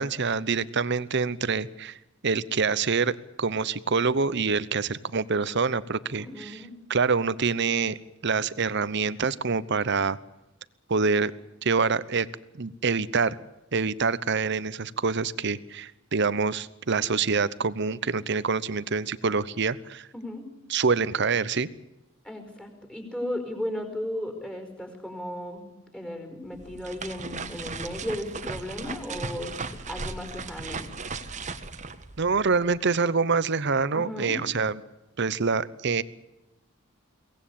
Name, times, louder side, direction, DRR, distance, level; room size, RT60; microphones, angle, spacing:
voice 1, 0.0-2.0 2.2-6.6 6.9-10.2 10.9-11.3 11.6-12.3 12.6-13.4 13.7-20.1 20.7-21.7 32.2-34.7 35.2-36.0, right 5 dB, 55° right, 17 dB, 0.9 m, -26 dB
voice 2, 6.1-6.7 20.1-20.4 22.2-25.6 25.9-29.5 29.9-30.9 33.9-34.4, left 1 dB, 5° left, 5 dB, 4.9 m, -35 dB
sound 1, 26.5-32.8, right 4 dB, 35° right, 1.3 m, -37 dB
23.5 x 18.5 x 8.7 m, 0.97 s
head